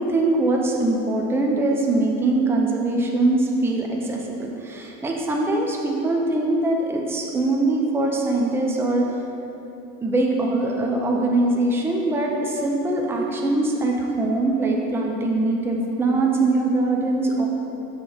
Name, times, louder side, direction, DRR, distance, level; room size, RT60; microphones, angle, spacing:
voice 1, 0.0-9.1 10.0-17.5, right 2 dB, 5° right, 0 dB, 0.5 m, -22 dB
6.8 x 3.8 x 4.9 m, 3.0 s
supercardioid pair, 120°, 41 cm